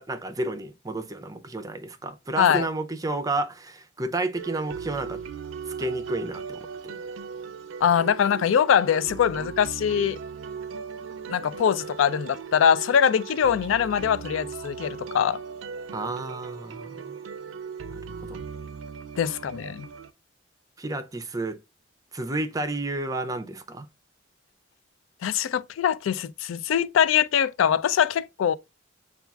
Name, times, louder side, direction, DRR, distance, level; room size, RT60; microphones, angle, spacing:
voice 1, 0.0-5.2 5.7-6.9 15.9-17.1 17.9-18.4 20.8-21.6 22.1-23.9, right 2 dB, 20° right, 0.5 m, -31 dB
sound 1, 4.4-20.1, right 6 dB, 85° right, 0.4 m, -38 dB
voice 2, 7.8-10.2 11.3-15.4 19.2-19.9 25.2-28.5, left 8 dB, 85° left, 0.3 m, -23 dB
7.1 x 2.4 x 2.3 m
head